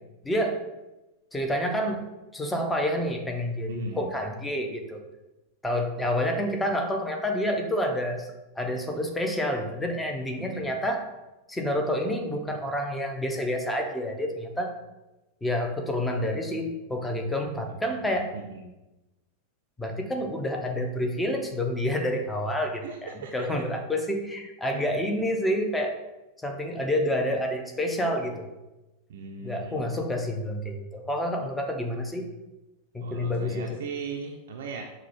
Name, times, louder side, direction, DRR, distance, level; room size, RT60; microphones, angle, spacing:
voice 1, 0.2-0.7 1.3-2.0 2.3-5.0 5.6-8.3 8.6-11.1 11.5-14.7 15.4-18.3 19.8-26.0 26.4-28.5 29.4-32.3 32.9-33.8, left 1 dB, 10° left, 3 dB, 0.6 m, -28 dB
voice 2, 3.7-4.1 10.4-10.7 17.6-18.6 22.8-23.5 24.7-24.8 29.1-29.9 33.0-34.8, right 5 dB, 60° right, 1 dB, 0.4 m, -39 dB
5.9 x 2.2 x 2.9 m, 1.0 s
figure-of-eight pair, 90°, 0 cm